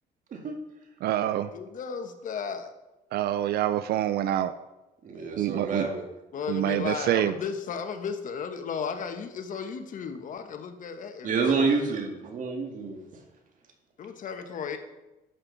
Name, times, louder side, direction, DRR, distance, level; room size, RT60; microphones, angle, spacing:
voice 1, 1.0-1.5 3.1-4.5 5.4-5.9 6.5-7.3, right 12 dB, 70° right, 12 dB, 0.5 m, -26 dB
voice 2, 1.5-2.7 6.3-11.8 14.0-14.8, left 6 dB, 50° left, 7 dB, 1.2 m, -35 dB
voice 3, 5.0-6.0 11.2-13.0, right 4 dB, 50° right, 3 dB, 2.0 m, -28 dB
11.0 x 7.8 x 4.0 m, 1.0 s
cardioid pair, 110°, 17 cm